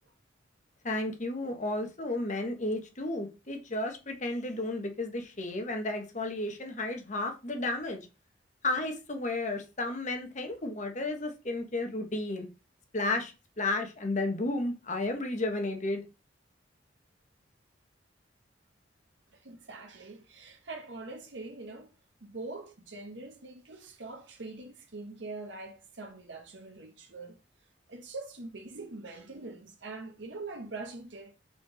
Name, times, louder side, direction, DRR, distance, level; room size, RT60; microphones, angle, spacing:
voice 1, 0.8-8.1 8.6-12.5 12.9-16.0, left 2 dB, 40° left, 1.3 m, -33 dB
voice 2, 19.3-21.9 22.2-27.4 27.9-31.3, right 3 dB, 80° right, 1.2 m, -43 dB
5.2 x 4.6 x 4.9 m
head